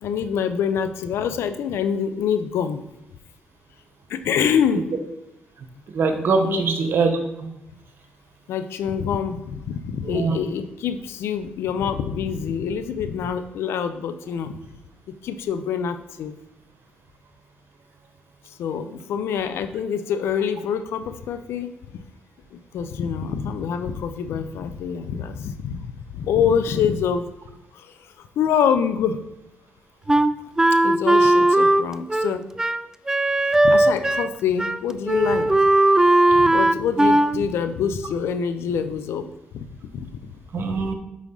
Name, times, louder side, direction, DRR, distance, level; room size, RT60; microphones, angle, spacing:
voice 1, 0.0-2.8 4.1-4.9 6.4-6.7 8.5-14.6 15.2-16.3 18.5-21.7 22.5-25.8 26.1-27.3 27.7-29.2 30.8-32.5 33.4-35.6 36.3-39.3 39.5-39.6 39.9-40.7, left 7 dB, 75° left, 10 dB, 0.6 m, -26 dB
voice 2, 5.9-7.5 10.0-10.4 40.5-40.9, right 4 dB, 60° right, 6 dB, 1.2 m, -22 dB
Wind instrument woodwind instrument, 30.1-34.3 34.6-34.8 35.1-37.4, right 1 dB, 15° right, 0.4 m, -18 dB
7.5 x 5.1 x 3.9 m, 0.90 s
supercardioid pair, 60°, 4 cm